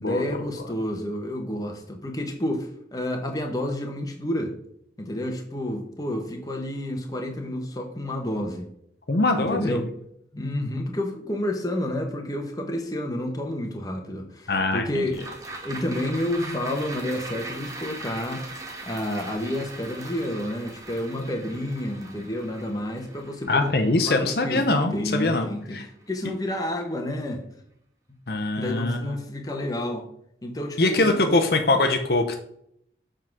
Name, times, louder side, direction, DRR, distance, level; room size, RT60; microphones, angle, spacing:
voice 1, 0.0-4.5 5.0-8.7 9.4-9.9 10.3-15.2 15.6-18.4 18.9-23.7 24.0-24.7 24.9-27.4 28.6-30.1 30.4-31.5 31.7-31.8, left 1 dB, 20° left, 2 dB, 1.1 m, -30 dB
voice 2, 9.1-9.8 14.5-15.0 23.5-25.5 25.7-25.8 28.3-29.1 30.8-32.4, left 2 dB, 60° left, 5 dB, 0.7 m, -23 dB
sound 1, 15.1-25.6 26.0-26.1, right 2 dB, 20° right, 1.1 m, -40 dB
7.3 x 3.8 x 5.9 m, 0.71 s
head